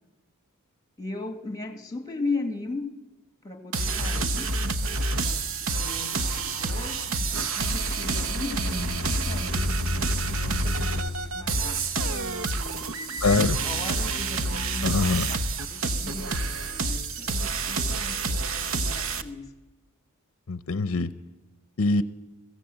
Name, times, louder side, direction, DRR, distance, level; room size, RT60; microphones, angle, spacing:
voice 1, 1.0-2.9 3.4-4.5 5.2-12.1 12.5-13.2 13.6-15.0 15.3-19.5, left 3 dB, 15° left, 8 dB, 1.9 m, -37 dB
sound 1, 3.7-19.2, right 3 dB, 65° right, 1.1 m, -28 dB
sound 2, 8.7-12.9, left 2 dB, 25° right, 2.6 m, -34 dB
voice 2, 13.2-13.6 14.8-15.3 20.5-21.1 21.8-22.0, left 3 dB, 65° left, 14 dB, 0.6 m, -23 dB
22.0 x 16.0 x 7.8 m, 1.1 s
head